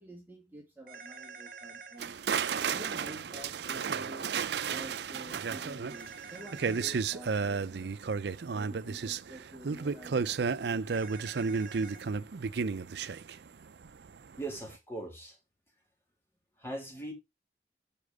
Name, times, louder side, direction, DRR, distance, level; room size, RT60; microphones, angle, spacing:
voice 1, 0.0-2.2 2.6-4.3 4.6-8.0 8.5-10.4, right 1 dB, 10° right, 2.2 m, -48 dB
sound 1, 0.9-2.0 5.9-7.0 10.9-12.0, right 5 dB, 55° right, 1.7 m, -47 dB
sound 2, 2.0-14.1 14.4-14.7, right 5 dB, 75° right, 0.5 m, -33 dB
voice 2, 14.4-15.4 16.6-17.1, right 2 dB, 15° left, 2.9 m, -40 dB
8.5 x 5.0 x 4.9 m
head